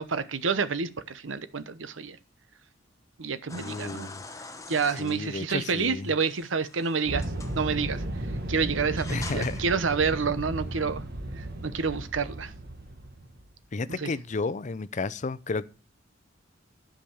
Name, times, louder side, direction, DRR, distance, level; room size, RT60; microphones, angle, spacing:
voice 1, 0.0-2.2 3.2-4.1 4.7-8.0 8.5-11.0 11.4-12.5 14.0-14.1, right 5 dB, 90° right, 0.9 m, -29 dB
voice 2, 3.5-4.2 5.0-6.1 9.1-9.6 13.7-15.7, left 3 dB, 40° left, 0.5 m, -32 dB
sound 1, 3.5-10.9, left 3 dB, 15° left, 0.9 m, -47 dB
sound 2, 7.1-13.5, right 1 dB, 55° right, 1.5 m, -35 dB
11.5 x 5.1 x 7.1 m
head